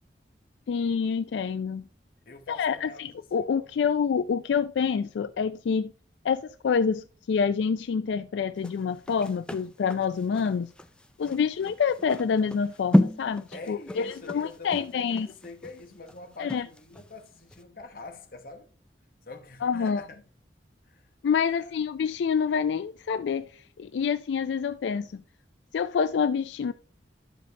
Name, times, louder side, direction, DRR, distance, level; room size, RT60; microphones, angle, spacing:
voice 1, 0.7-1.8 2.5-5.9 6.2-10.7 11.2-15.3 16.4-16.7 19.6-20.0 21.2-23.5 23.8-25.2 25.7-26.7, left 6 dB, 90° left, 0.3 m, -27 dB
voice 2, 2.3-3.7 13.5-18.7 19.3-20.2 20.9-21.1 21.4-21.8, left 3 dB, 55° left, 1.0 m, -45 dB
sound 1, 8.6-17.1 17.5-17.6, left 1 dB, 5° left, 0.4 m, -31 dB
12.0 x 5.1 x 2.7 m
head